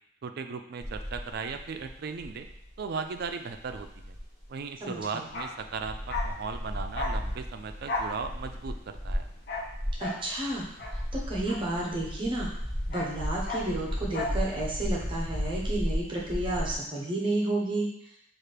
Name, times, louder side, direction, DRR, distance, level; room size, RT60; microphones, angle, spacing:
voice 1, 0.2-2.5 2.8-4.1 4.5-9.3, right 5 dB, 50° right, 7 dB, 0.4 m, -37 dB
sound 1, 0.8-4.4 5.0-5.1 5.2-5.3 5.7-16.7, equal, 5° left, 1.8 m, -35 dB
voice 2, 4.8-5.3 10.0-10.7 10.9-12.5 12.9-18.1, right 2 dB, 25° right, -3 dB, 0.7 m, -31 dB
Bark, 5.2-12.3 12.5-14.5 14.7-14.9, left 2 dB, 50° left, 0.6 m, -37 dB
5.8 x 2.5 x 3.3 m, 0.72 s
head